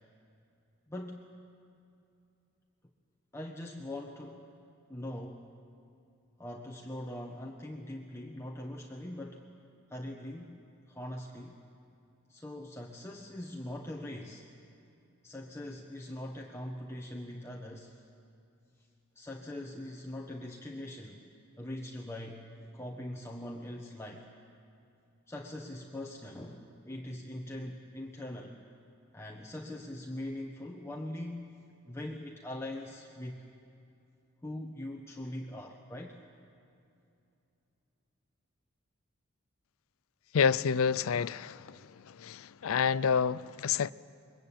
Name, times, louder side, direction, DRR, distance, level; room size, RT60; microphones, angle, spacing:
voice 1, 0.9-1.3 3.3-4.4 4.9-5.5 6.4-9.5 9.9-10.6 10.9-11.6 12.3-14.5 15.2-18.0 19.1-21.2 21.6-22.5 22.7-24.3 25.3-28.6 29.1-33.5 34.4-36.2, left 1 dB, 15° left, 1.1 m, -42 dB
voice 2, 40.3-41.8 42.1-43.9, left 6 dB, 75° left, 0.5 m, -28 dB
23.0 x 21.5 x 8.8 m
head